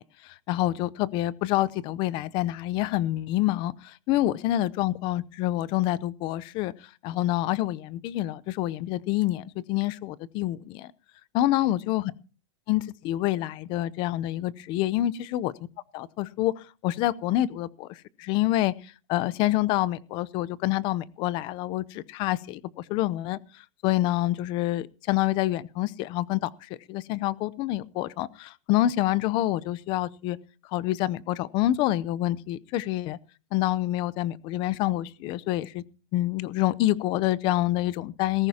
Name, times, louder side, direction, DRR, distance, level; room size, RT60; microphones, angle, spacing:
voice 1, 0.0-6.7 7.0-10.9 11.3-12.1 12.7-15.5 15.9-23.4 23.8-26.5 26.9-30.4 30.7-33.2 33.5-35.8 36.1-38.5, left 15 dB, 30° left, 19 dB, 0.6 m, -27 dB
18.5 x 16.0 x 2.9 m, 0.36 s
supercardioid pair, 165°, 17 cm